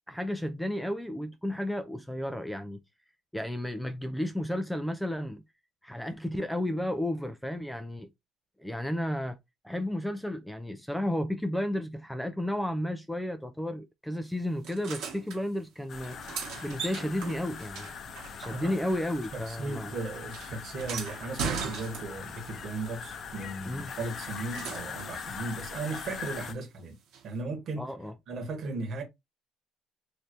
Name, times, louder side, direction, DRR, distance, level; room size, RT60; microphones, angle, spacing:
voice 1, 0.1-2.8 3.3-5.4 5.8-8.1 8.6-9.4 9.6-16.2 16.6-17.9 18.4-19.9 23.7-23.9 27.8-28.1, left 1 dB, ahead, 0.5 m, -32 dB
sound 1, 14.6-15.4 16.0-19.0 19.2-22.4 23.9-25.2 27.1-27.2, right 5 dB, 75° right, 1.6 m, -39 dB
sound 2, 15.9-26.5, left 6 dB, 50° left, 0.6 m, -41 dB
voice 2, 19.3-26.9 27.2-27.9 28.3-29.0, right 3 dB, 55° right, 1.6 m, -36 dB
3.2 x 2.7 x 2.7 m
cardioid pair, 105°, 0 cm